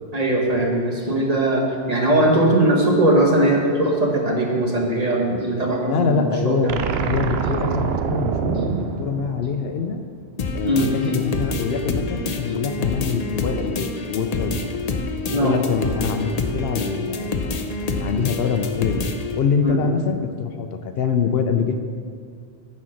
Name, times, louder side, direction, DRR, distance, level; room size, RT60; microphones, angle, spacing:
voice 1, 0.1-6.7 10.6-10.9 15.3-15.5 19.6-19.8, right 1 dB, 40° right, 0 dB, 1.2 m, -20 dB
voice 2, 5.8-10.0 10.5-14.8 15.3-17.4 17.9-19.0 19.4-21.7, left 6 dB, 70° left, 7 dB, 0.8 m, -24 dB
sound 1, 6.7-10.0, right 7 dB, 75° right, 0.8 m, -25 dB
sound 2, 10.4-19.4, left 3 dB, 45° left, 0.6 m, -27 dB
9.6 x 4.4 x 6.3 m, 2.2 s
omnidirectional pair, 1.1 m